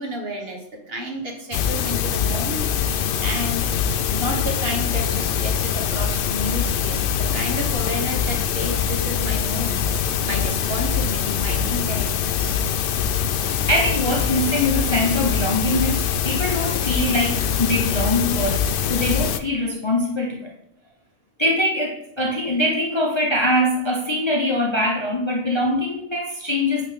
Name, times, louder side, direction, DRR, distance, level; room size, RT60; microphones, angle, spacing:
voice 1, 0.0-2.9 3.2-3.7 4.1-12.6, equal, 45° right, 2 dB, 1.3 m, -31 dB
sound 1, 1.5-19.4, left 8 dB, 75° left, 0.5 m, -23 dB
voice 2, 13.7-20.5 21.4-26.9, left 1 dB, 25° left, -1 dB, 0.8 m, -23 dB
8.7 x 3.6 x 4.9 m, 0.76 s
omnidirectional pair, 1.5 m